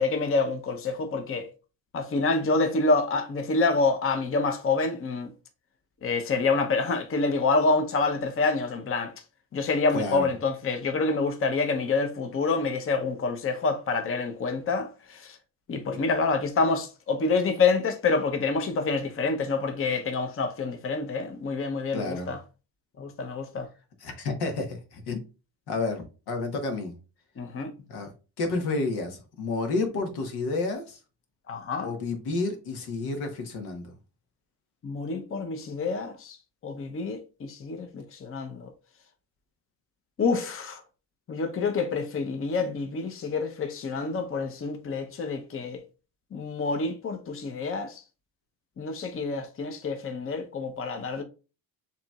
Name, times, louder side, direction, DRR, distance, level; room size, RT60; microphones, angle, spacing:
voice 1, 0.0-1.5 1.9-5.3 6.0-9.1 9.5-15.4 15.7-22.4 23.0-23.7 27.4-27.7 31.5-31.9 34.8-36.4 36.6-38.7 40.2-40.8 41.3-45.8 46.3-48.0 48.8-51.2, left 4 dB, 35° left, 0.8 m, -27 dB
voice 2, 9.9-10.3 21.9-22.4 24.0-25.2 25.7-27.0 27.9-31.0 31.8-33.9, left 3 dB, 85° left, 1.3 m, -30 dB
6.8 x 3.0 x 2.3 m
cardioid pair, 105°, 37 cm